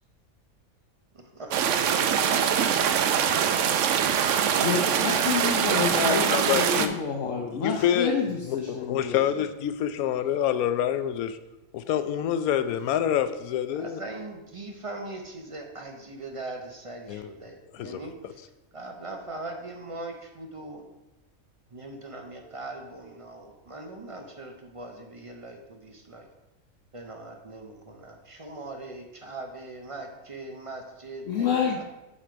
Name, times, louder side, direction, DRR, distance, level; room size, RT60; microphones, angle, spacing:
voice 1, 1.4-2.5 4.6-4.9 13.7-18.4 18.7-20.8 21.7-26.3 26.9-31.8, right 2 dB, 30° right, 3 dB, 0.6 m, -40 dB
sound 1, 1.5-6.9, right 8 dB, 70° right, 0.9 m, -23 dB
voice 2, 4.6-9.2 31.3-31.8, left 6 dB, 65° left, 0 dB, 1.1 m, -29 dB
voice 3, 5.8-6.9 7.6-8.1 8.5-11.4 11.7-14.0 17.1-17.3 17.7-18.0, left 10 dB, 85° left, 12 dB, 1.0 m, -27 dB
7.4 x 4.3 x 5.1 m, 0.97 s
omnidirectional pair, 1.5 m